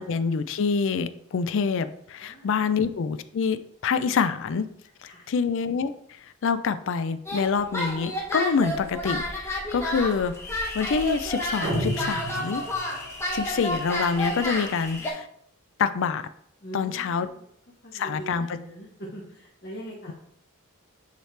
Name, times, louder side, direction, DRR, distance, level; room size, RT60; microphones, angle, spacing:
voice 1, 0.0-4.7 5.0-5.9 6.4-10.3 10.7-12.6 13.3-15.3 15.8-16.2 16.7-17.3 17.9-18.6, left 5 dB, 65° left, 12 dB, 0.4 m, -26 dB
sound 1, 7.2-15.1, left 1 dB, 15° left, 1.0 m, -31 dB
sound 2, 11.6-13.1, right 1 dB, 50° right, 0.9 m, -31 dB
voice 2, 16.6-17.4 17.8-20.1, right 1 dB, 45° left, -5 dB, 1.3 m, -41 dB
8.9 x 3.3 x 3.3 m, 0.70 s
head